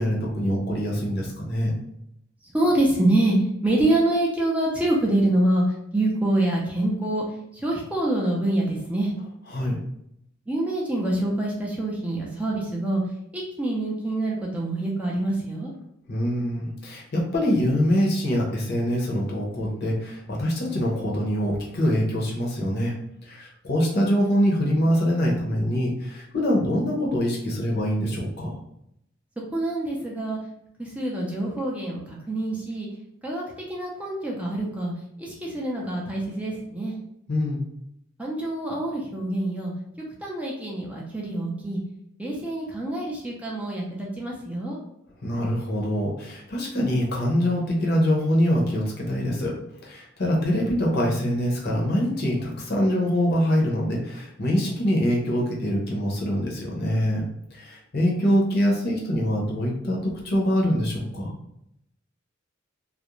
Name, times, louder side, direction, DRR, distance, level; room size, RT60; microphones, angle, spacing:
voice 1, 0.0-1.7 9.5-9.8 16.1-22.9 23.3-28.5 37.3-37.6 45.2-49.5 49.8-57.2 57.5-61.3, equal, 55° left, -2 dB, 0.7 m, -24 dB
voice 2, 2.5-3.4 3.6-5.6 5.9-7.2 7.5-9.1 10.5-13.0 13.3-15.7 29.5-30.4 30.8-32.9 33.2-34.9 35.2-37.0 38.2-39.7 40.2-41.8 42.2-44.8, right 1 dB, 5° right, -3 dB, 0.4 m, -26 dB
2.4 x 2.0 x 2.9 m, 0.78 s
head